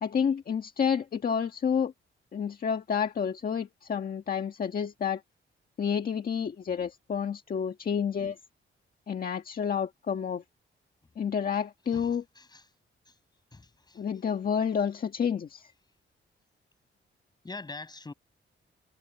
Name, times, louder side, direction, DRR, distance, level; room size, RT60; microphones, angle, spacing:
voice 1, 0.0-1.9 2.3-5.2 5.8-8.4 9.1-10.4 11.2-12.2 13.9-15.7, left 7 dB, 45° left, 1.6 m, -29 dB
voice 2, 11.9-12.6 13.1-13.2 13.5-14.0 17.4-18.1, left 3 dB, 20° left, 6.5 m, -44 dB
wide cardioid pair, 170°, 21 cm